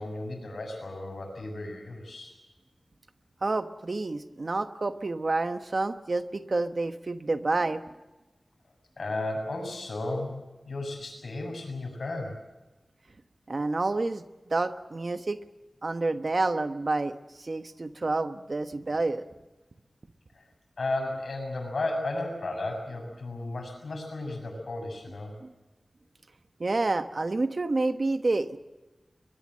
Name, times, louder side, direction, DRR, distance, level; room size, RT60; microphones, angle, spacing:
voice 1, 0.0-2.4 9.0-10.4 10.7-12.4 20.4-20.5 20.8-25.3, left 2 dB, 85° left, 4 dB, 6.9 m, -34 dB
voice 2, 3.4-7.8 13.5-15.4 15.8-19.2 25.4-25.5 26.6-28.6, right 2 dB, 55° right, 9 dB, 1.2 m, -29 dB
22.5 x 21.5 x 7.6 m, 1.1 s
wide cardioid pair, 65°, 0 cm